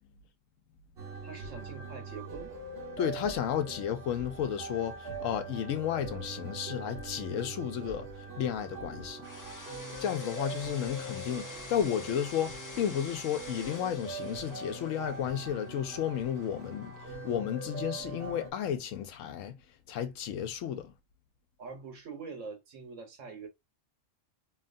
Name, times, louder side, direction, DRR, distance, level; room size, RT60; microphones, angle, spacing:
sound 1, 1.0-18.5, right 2 dB, 55° right, 1.1 m, -42 dB
voice 1, 1.2-2.5 21.6-23.5, right 5 dB, 80° right, 1.3 m, -44 dB
voice 2, 3.0-8.1 8.4-9.2 10.0-16.9 17.2-19.6 19.9-20.9, left 9 dB, 85° left, 1.0 m, -33 dB
sound 2, 9.2-17.3, left 2 dB, 25° left, 0.4 m, -48 dB
2.9 x 2.3 x 2.5 m
omnidirectional pair, 1.3 m